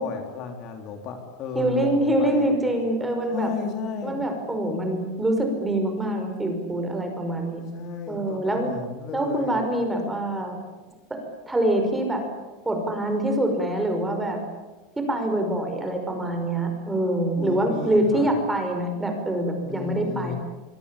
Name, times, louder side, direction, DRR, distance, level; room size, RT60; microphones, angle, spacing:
voice 1, 0.0-2.7 3.3-4.2 7.7-9.6 17.4-18.4 19.6-20.4, left 6 dB, 40° left, 4 dB, 3.5 m, -34 dB
voice 2, 1.6-3.5 4.0-7.6 8.1-8.7 9.1-10.6 11.5-12.2 12.6-14.4 15.0-20.4, right 1 dB, 5° right, 4 dB, 5.5 m, -25 dB
25.5 x 23.5 x 8.6 m, 1.2 s
supercardioid pair, 155°, 0 cm